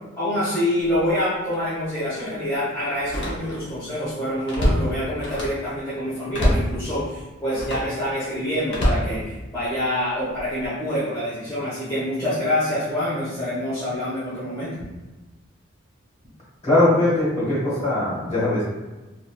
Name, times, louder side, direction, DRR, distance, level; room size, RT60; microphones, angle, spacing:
voice 1, 0.2-14.8, left 1 dB, 15° left, -13 dB, 1.1 m, -26 dB
Slam, 0.9-1.1 1.5-1.7 3.0-3.8 4.1-5.7 6.3-6.8 7.5-8.0 8.7-9.8 10.4-10.7, equal, 60° left, 0.7 m, -25 dB
voice 2, 16.6-18.7, left 1 dB, 35° left, -8 dB, 1.4 m, -20 dB
3.4 x 2.6 x 2.3 m, 1.1 s
head